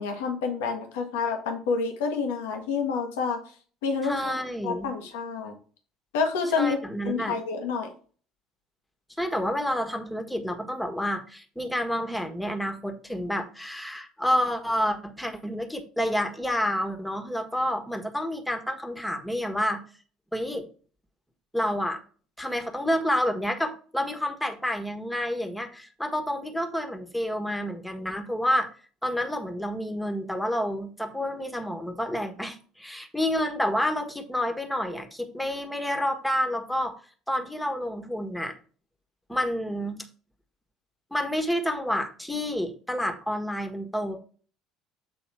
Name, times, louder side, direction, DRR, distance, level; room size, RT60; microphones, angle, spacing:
voice 1, 0.0-3.4 3.8-4.3 4.6-5.5 6.1-6.8 7.0-7.9, left 5 dB, 70° left, 3 dB, 1.2 m, -28 dB
voice 2, 4.0-4.9 6.6-7.4 9.2-19.8 20.3-20.7 21.5-22.0 22.4-28.7 29.0-37.0 37.3-38.5 39.3-40.0 41.1-44.2, equal, 5° left, 5 dB, 1.4 m, -29 dB
7.6 x 3.8 x 4.6 m, 0.41 s
figure-of-eight pair, 60°, 0 cm